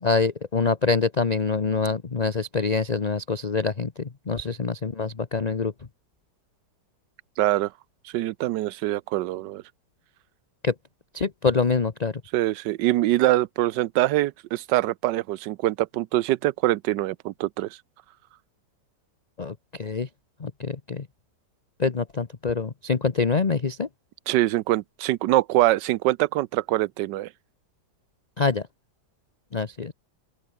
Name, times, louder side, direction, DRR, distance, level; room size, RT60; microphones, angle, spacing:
voice 1, 0.0-5.7 10.6-10.7 11.1-12.2 19.4-20.1 20.4-21.1 21.8-23.9 28.4-28.7 29.5-29.9, left 4 dB, 30° left, 0.8 m, -25 dB
voice 2, 7.4-7.7 8.0-9.6 12.3-17.7 24.3-27.3, right 16 dB, 75° right, 1.3 m, -24 dB
open air
omnidirectional pair, 1.9 m